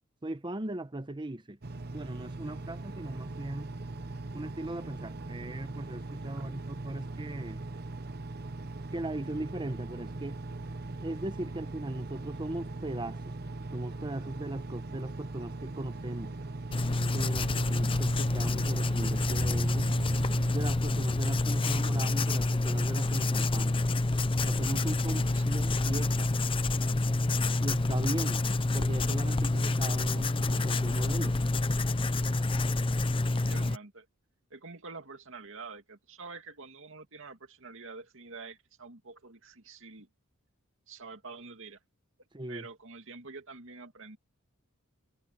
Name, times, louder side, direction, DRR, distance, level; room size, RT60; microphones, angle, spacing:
voice 1, 0.2-1.6 1.9-3.7 4.3-7.6 8.9-10.4 11.0-13.3 13.7-16.3 17.0-19.9 20.5-23.8 24.4-26.3 27.6-28.5 28.7-31.4 42.3-42.7, right 1 dB, 20° right, 1.0 m, -38 dB
Engine, 1.6-20.5, right 2 dB, 50° right, 1.0 m, -40 dB
voice 2, 6.2-6.5 25.1-25.6 33.3-34.1 34.5-40.1 40.9-41.8 42.5-44.2, right 4 dB, 65° right, 2.4 m, -47 dB
Writing, 16.7-33.8, left 2 dB, 25° left, 0.6 m, -28 dB
head